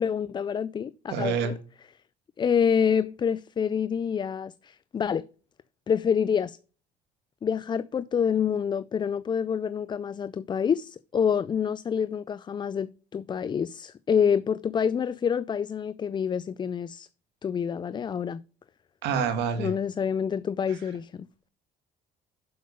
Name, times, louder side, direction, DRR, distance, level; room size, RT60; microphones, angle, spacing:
voice 1, 0.0-1.6 2.4-5.2 5.9-6.6 7.4-17.1 17.4-18.4 19.6-21.3, left 7 dB, 25° left, 0.3 m, -27 dB
voice 2, 1.1-1.5 19.0-19.7, right 6 dB, 85° right, 1.9 m, -27 dB
7.7 x 6.7 x 5.3 m
cardioid pair, 110°, 17 cm